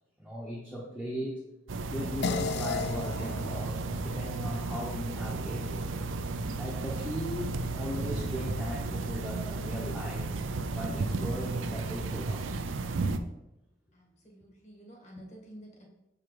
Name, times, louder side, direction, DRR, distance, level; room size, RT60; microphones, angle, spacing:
voice 1, 0.2-1.4 1.9-5.8 6.6-10.3 10.7-12.7, equal, 5° left, -6 dB, 0.9 m, -38 dB
sound 1, 1.7-13.2, right 3 dB, 85° right, 0.5 m, -34 dB
sound 2, 2.2-7.0, left 5 dB, 55° left, 0.3 m, -38 dB
voice 2, 13.9-15.9, equal, 35° left, 0 dB, 1.6 m, -50 dB
6.9 x 5.0 x 4.8 m, 0.89 s
head